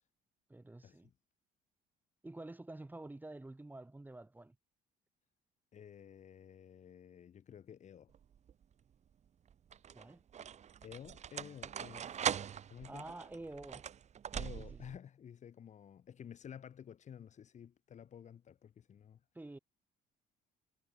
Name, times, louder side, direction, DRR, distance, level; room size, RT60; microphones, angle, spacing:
voice 1, 0.5-1.1 2.2-4.6 9.9-10.2 12.9-13.8 14.5-14.8 19.3-19.6, right 2 dB, 10° right, 3.4 m, -49 dB
voice 2, 5.7-8.1 10.8-12.3 12.7-13.1 14.3-19.2, left 8 dB, 45° left, 1.7 m, -52 dB
sound 1, 8.1-8.6 9.5-15.0, right 8 dB, 40° right, 1.2 m, -41 dB
cardioid pair, 110°, 17 cm